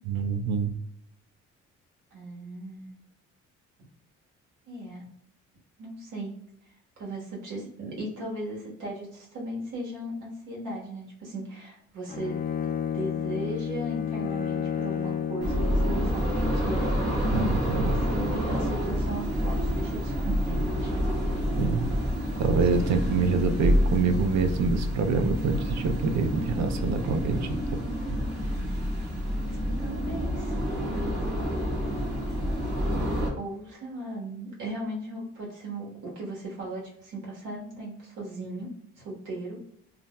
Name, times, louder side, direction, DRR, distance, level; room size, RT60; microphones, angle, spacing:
voice 1, 0.1-0.7 17.3-18.0 21.6-21.9 22.4-27.6, right 4 dB, 65° right, 7 dB, 0.5 m, -26 dB
voice 2, 2.1-2.9 4.7-5.1 5.8-6.3 7.0-12.4 12.9-17.0 17.7-20.9 29.8-30.6 30.8-31.2 33.3-38.7 39.0-39.7, right 1 dB, 85° right, -3 dB, 1.2 m, -37 dB
Bowed string instrument, 12.1-16.3, left 8 dB, 30° left, 0.5 m, -31 dB
sound 1, 15.4-33.3, equal, 35° right, 1.1 m, -28 dB
2.5 x 2.2 x 2.9 m, 0.71 s
cardioid pair, 90°, 30 cm